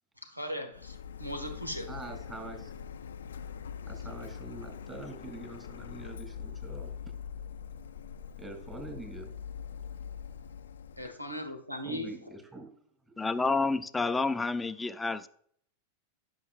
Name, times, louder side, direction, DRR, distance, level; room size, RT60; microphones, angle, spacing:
voice 1, 0.2-1.9 11.0-12.1, equal, 85° right, 1.4 m, -38 dB
Printer, 0.7-11.1, left 7 dB, 65° left, 0.5 m, -43 dB
voice 2, 1.9-2.7 3.4-3.6 3.9-7.0 8.4-9.4 11.8-12.7 13.0-13.2, right 2 dB, 15° right, 2.6 m, -44 dB
voice 3, 13.2-15.3, left 3 dB, 10° left, 0.5 m, -29 dB
16.5 x 6.4 x 2.5 m
figure-of-eight pair, 90°, 0 cm